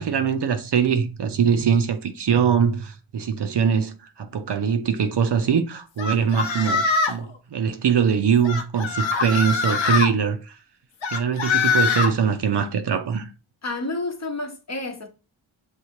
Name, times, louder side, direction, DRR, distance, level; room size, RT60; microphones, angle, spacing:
voice 1, 0.0-10.6 11.1-13.3, right 7 dB, 60° right, 0.6 m, -22 dB
sound 1, 6.0-7.2 8.4-10.1 11.0-12.1, left 5 dB, 70° left, 0.7 m, -23 dB
voice 2, 13.6-15.1, left 2 dB, 35° left, 0.8 m, -30 dB
6.4 x 2.4 x 2.8 m
cardioid pair, 55°, 47 cm